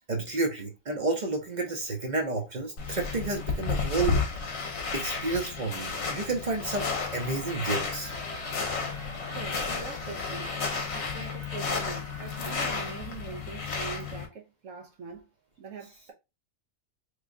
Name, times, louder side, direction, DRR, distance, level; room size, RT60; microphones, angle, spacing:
voice 1, 0.1-4.2 4.6-6.9 7.1-8.1, right 3 dB, 40° right, 0.7 m, -31 dB
sound 1, 2.8-14.3, left 4 dB, 55° left, 1.0 m, -32 dB
sound 2, 7.5-12.9, right 1 dB, 25° left, 0.8 m, -47 dB
voice 2, 9.3-10.5 10.9-15.2 15.6-16.1, right 5 dB, 75° right, 1.1 m, -42 dB
3.2 x 2.3 x 3.6 m
omnidirectional pair, 1.4 m